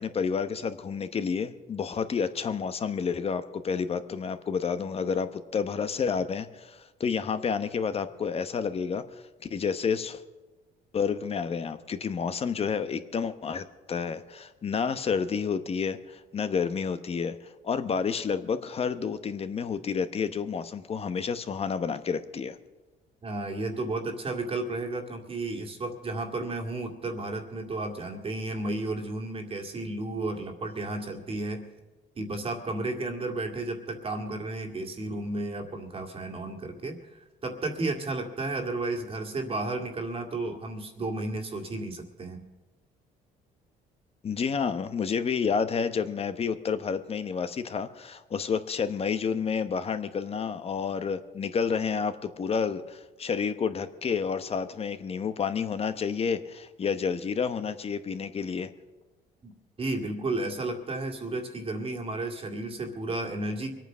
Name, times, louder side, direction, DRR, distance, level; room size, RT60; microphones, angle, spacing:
voice 1, 0.0-9.0 9.5-10.2 10.9-17.4 17.6-22.6 44.2-58.7, left 6 dB, 35° left, 11 dB, 1.0 m, -30 dB
voice 2, 23.2-31.7 32.2-42.4 59.4-59.5 59.8-63.7, right 2 dB, 35° right, 3 dB, 2.1 m, -33 dB
23.0 x 9.1 x 6.2 m, 1.2 s
cardioid pair, 110°, 17 cm